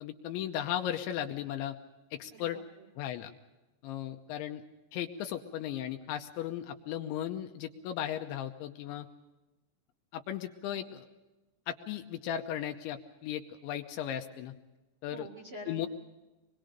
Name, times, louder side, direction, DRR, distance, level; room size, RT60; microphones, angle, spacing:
voice 1, 0.0-1.8 2.1-2.6 3.0-3.3 3.8-4.6 4.9-9.1 10.1-11.0 11.7-14.5 15.0-15.3 15.7-15.9, left 11 dB, 80° left, 5 dB, 3.0 m, -36 dB
voice 2, 2.3-2.9 10.7-11.0 15.1-15.9, right 1 dB, 45° right, -2 dB, 1.9 m, -47 dB
26.0 x 22.0 x 5.2 m, 1.1 s
omnidirectional pair, 5.8 m